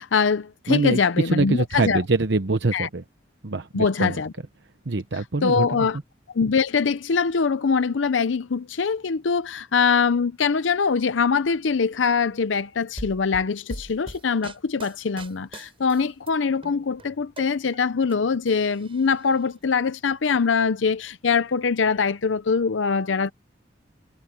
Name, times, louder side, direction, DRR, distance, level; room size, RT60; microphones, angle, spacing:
voice 1, 0.0-2.0 2.7-2.9 3.7-4.3 5.4-6.0 6.3-23.3, left 5 dB, 90° left, 0.6 m, -23 dB
voice 2, 0.7-3.0 3.4-4.2 4.8-5.7, right 3 dB, 65° right, 0.9 m, -24 dB
sound 1, 13.0-16.3 16.6-18.2 18.5-19.3, right 1 dB, 30° right, 7.5 m, -41 dB
head